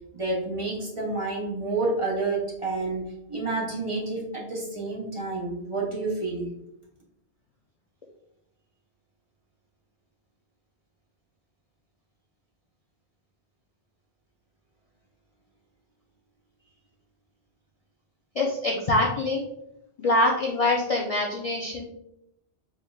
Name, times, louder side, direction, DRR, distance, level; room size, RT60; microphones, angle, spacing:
voice 1, 0.1-6.5, right 3 dB, 35° right, -3 dB, 0.8 m, -29 dB
voice 2, 18.4-19.4 20.0-21.8, left 2 dB, 45° left, -2 dB, 0.5 m, -24 dB
4.5 x 3.5 x 2.3 m, 0.82 s
omnidirectional pair, 1.1 m